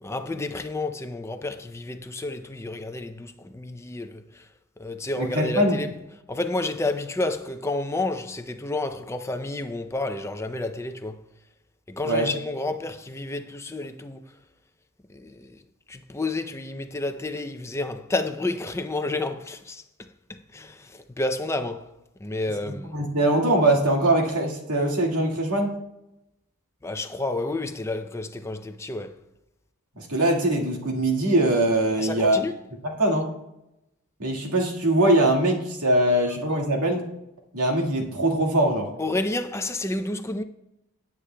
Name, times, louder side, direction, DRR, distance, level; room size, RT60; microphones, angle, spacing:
voice 1, 0.0-4.5 4.8-5.9 6.3-11.2 11.9-14.3 15.1-15.6 15.9-21.9 22.2-23.0 26.8-29.1 32.0-32.6 39.0-40.4, left 2 dB, 10° left, 0.4 m, -30 dB
voice 2, 5.2-5.8 12.0-12.3 22.7-25.8 30.0-32.4 33.0-33.3 34.2-37.0 37.5-38.9, right 1 dB, 85° right, 1.8 m, -22 dB
17.5 x 8.3 x 2.2 m
head